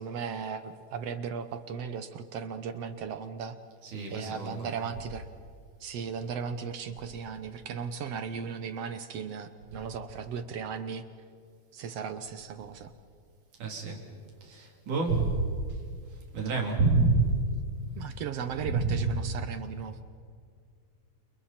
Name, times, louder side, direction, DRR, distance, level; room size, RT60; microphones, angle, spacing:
voice 1, 0.0-3.6 4.1-5.3 5.8-11.1 11.7-12.9 18.0-20.0, right 6 dB, 65° right, 10 dB, 1.8 m, -36 dB
voice 2, 3.8-4.6 13.6-14.0 14.4-15.8 16.3-17.3 18.6-19.0, right 3 dB, 80° right, 0 dB, 4.9 m, -27 dB
29.5 x 28.5 x 4.4 m, 2.2 s
omnidirectional pair, 3.5 m